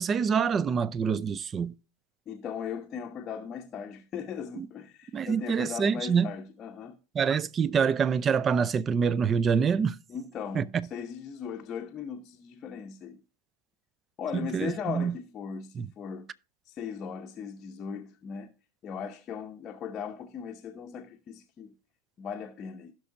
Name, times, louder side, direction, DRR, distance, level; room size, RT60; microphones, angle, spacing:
voice 1, 0.0-1.7 4.6-4.7 5.1-6.3 7.1-10.0 10.5-10.7 14.3-15.1 15.8-15.9, right 6 dB, 25° right, 0.5 m, -26 dB
voice 2, 2.3-7.0 10.1-13.2 14.2-16.3 16.7-18.5 18.8-21.7 22.2-22.9, left 7 dB, 30° left, 0.7 m, -38 dB
16.0 x 6.0 x 2.6 m
figure-of-eight pair, 90°, 0 cm